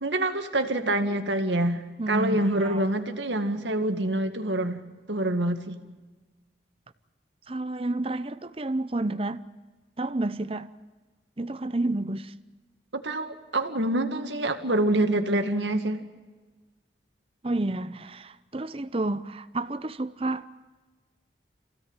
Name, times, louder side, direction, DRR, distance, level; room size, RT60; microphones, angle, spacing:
voice 1, 0.0-5.8 12.9-16.0, right 1 dB, 85° right, 2.1 m, -26 dB
voice 2, 2.0-2.8 7.5-9.4 10.0-10.7 11.4-12.3 17.4-20.5, right 2 dB, 30° right, 0.7 m, -30 dB
27.0 x 16.5 x 9.0 m
head